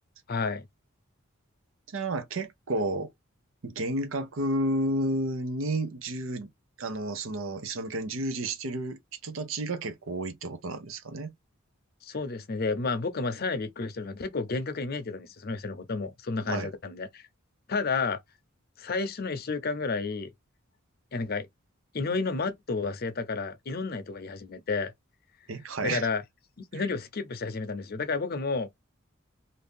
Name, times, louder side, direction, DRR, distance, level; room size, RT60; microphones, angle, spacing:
voice 1, 0.3-0.7 12.0-17.3 17.7-18.2 18.8-20.3 21.1-21.5 21.9-24.9 25.8-26.2 26.7-28.7, left 4 dB, 50° left, 0.6 m, -31 dB
voice 2, 1.9-3.1 3.6-6.5 6.8-11.3 16.5-16.7 25.5-26.1 26.7-26.8, right 1 dB, 75° right, 0.7 m, -31 dB
2.7 x 2.6 x 3.4 m
head